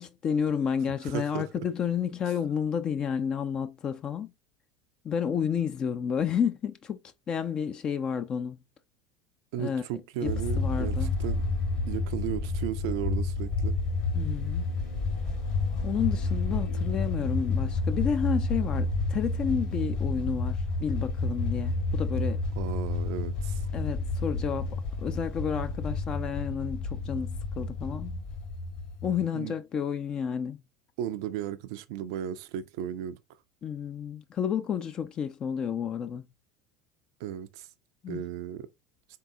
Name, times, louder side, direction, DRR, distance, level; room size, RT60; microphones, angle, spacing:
voice 1, 0.0-4.3 5.0-7.0 7.3-8.6 9.6-9.8 10.2-11.1 14.1-14.6 15.8-22.4 23.7-28.2 29.0-30.6 33.6-36.3 38.0-38.3, left 7 dB, 35° left, 0.4 m, -31 dB
voice 2, 1.0-1.5 9.5-11.4 11.9-13.8 22.6-23.7 29.3-29.5 31.0-33.2 37.2-37.7 38.1-38.7, right 11 dB, 60° right, 0.4 m, -35 dB
sound 1, 10.2-29.2, left 3 dB, 50° left, 2.1 m, -30 dB
3.9 x 3.7 x 2.6 m
figure-of-eight pair, 70°, 2 cm